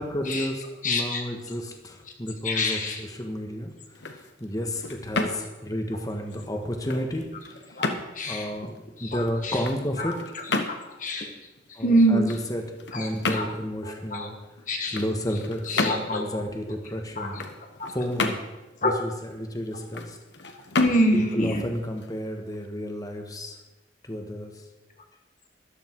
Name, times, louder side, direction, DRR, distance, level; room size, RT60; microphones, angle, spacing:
voice 1, 0.0-3.7 4.1-7.3 7.7-7.8 8.3-8.7 9.0-10.2 11.7-12.6 12.9-14.3 14.9-17.4 17.9-18.4 18.8-20.2 21.1-23.6 24.0-24.6, equal, 20° left, 4 dB, 1.5 m, -31 dB
voice 2, 0.8-1.2 2.4-3.1 6.9-7.0 7.7-7.9 8.1-8.5 9.0-9.6 10.0-10.6 11.0-11.3 11.7-12.4 12.9-13.5 13.8-14.3 14.7-15.0 15.7-16.4 16.7-16.8 17.2-17.4 17.8-17.9 18.8-19.0 20.8-21.7, equal, 45° left, 2 dB, 1.5 m, -26 dB
sound 1, 3.8-22.7, left 3 dB, 65° left, 1.3 m, -34 dB
13.5 x 12.0 x 4.7 m, 1.1 s
head